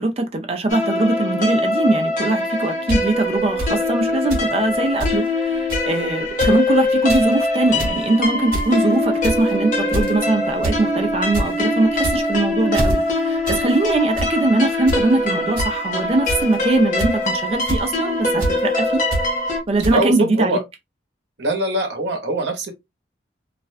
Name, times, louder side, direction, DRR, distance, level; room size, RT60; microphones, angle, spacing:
voice 1, 0.0-19.0 19.7-20.6, right 2 dB, 35° right, 0.5 m, -21 dB
sound 1, 0.7-19.6, left 2 dB, 45° left, 0.8 m, -22 dB
sound 2, 2.9-3.0 3.6-3.7 4.3-4.5 4.7-5.2 5.7-5.9 6.3-6.6 6.9-7.2 7.6-8.0 8.5-8.8 9.2-9.5 9.9-10.2 10.6-10.8 11.1-11.5 11.9-12.4 12.7-12.9 13.4-13.6 13.9-14.3 14.9-15.0 15.6-15.7 16.3-16.5 17.0-17.3 17.7-17.8 18.4-18.5 19.1-19.2 19.8-19.9, right 1 dB, 50° right, 1.1 m, -24 dB
voice 2, 19.9-20.6 21.4-22.7, right 1 dB, 70° right, 0.8 m, -22 dB
2.4 x 2.2 x 2.4 m
head